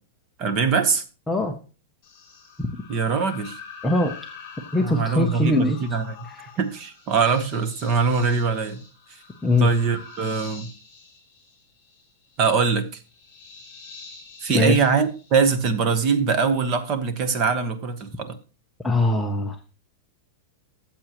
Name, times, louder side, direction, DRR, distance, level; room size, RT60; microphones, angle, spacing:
voice 1, 0.4-1.0 2.9-3.6 4.8-6.1 6.6-8.8 9.6-10.7 12.4-13.0 14.4-18.4, right 5 dB, 25° right, 0.9 m, -22 dB
voice 2, 1.3-1.6 3.8-4.1 4.7-5.8 9.4-9.7 14.5-14.8 18.8-19.6, left 2 dB, 5° left, 0.5 m, -21 dB
sound 1, 2.0-15.9, left 5 dB, 25° left, 3.7 m, -45 dB
13.5 x 7.4 x 2.9 m
supercardioid pair, 180°, 0 cm